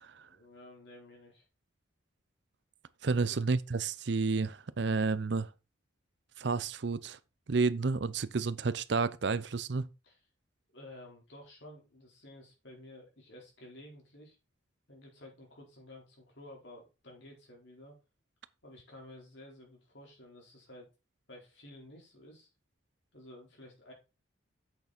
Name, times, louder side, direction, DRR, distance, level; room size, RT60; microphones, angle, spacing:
voice 1, 0.2-1.5 3.1-3.4 10.0-10.2 10.7-14.4 14.9-18.0 18.6-20.9 21.3-22.5 23.1-23.9, left 1 dB, 60° left, 4.3 m, -52 dB
voice 2, 3.0-5.5 6.4-7.2 7.5-9.9, right 4 dB, 60° right, 0.5 m, -31 dB
8.2 x 6.7 x 4.3 m
head